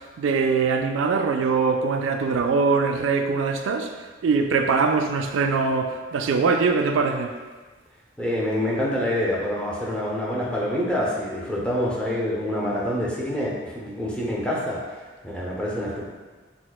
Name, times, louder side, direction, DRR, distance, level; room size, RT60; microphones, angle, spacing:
voice 1, 0.2-3.9 4.2-7.3, right 4 dB, 85° right, 6 dB, 0.3 m, -22 dB
voice 2, 8.2-16.1, left 1 dB, 5° left, -5 dB, 0.5 m, -26 dB
6.1 x 2.1 x 2.3 m, 1.4 s
head